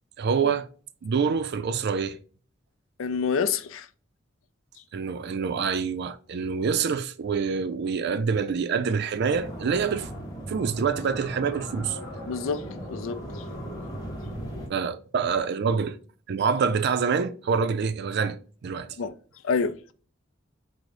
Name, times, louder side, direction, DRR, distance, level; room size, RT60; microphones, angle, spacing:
voice 1, 0.2-0.7 1.0-2.2 4.9-10.1 10.5-12.0 14.7-16.0 16.3-18.9, right 6 dB, 55° right, 0.4 m, -26 dB
voice 2, 3.0-3.9 12.3-12.6 12.9-13.4 19.0-19.1 19.4-19.8, left 5 dB, 90° left, 0.4 m, -27 dB
sound 1, 9.3-14.7, equal, 15° left, 1.4 m, -37 dB
4.7 x 2.1 x 3.8 m
head